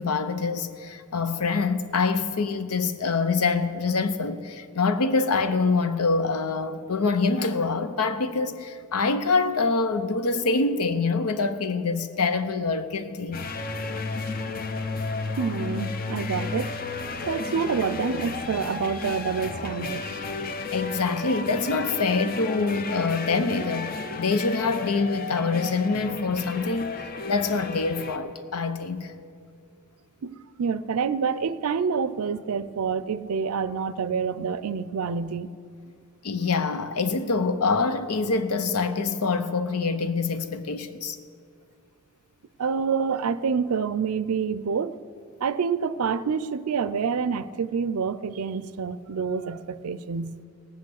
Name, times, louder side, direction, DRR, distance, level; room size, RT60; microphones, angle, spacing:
voice 1, 0.0-13.4 20.7-23.9 24.2-26.9 27.3-29.1 36.2-41.2, left 4 dB, 85° left, 0.8 m, -25 dB
sound 1, 13.3-28.2, left 3 dB, 40° left, 0.7 m, -33 dB
voice 2, 15.4-16.7 17.3-20.1 20.4-20.6 30.2-35.5 42.6-45.0 45.4-50.3, right 6 dB, 80° right, 0.5 m, -27 dB
18.0 x 8.3 x 6.5 m
head